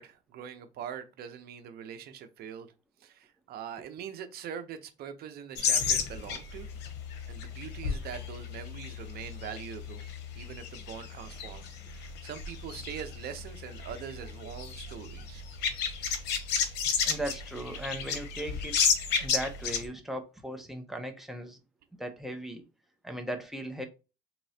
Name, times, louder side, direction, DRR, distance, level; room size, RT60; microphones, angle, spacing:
voice 1, 0.0-2.7 3.0-6.7 7.3-10.0 10.3-15.4, right 8 dB, 65° right, 0.8 m, -43 dB
sound 1, 5.6-19.9, left 6 dB, 90° left, 0.8 m, -33 dB
voice 2, 17.0-18.8 19.2-21.6 22.0-22.6 23.0-23.8, right 1 dB, ahead, 0.8 m, -37 dB
4.2 x 3.0 x 2.8 m
cardioid pair, 110°, 17 cm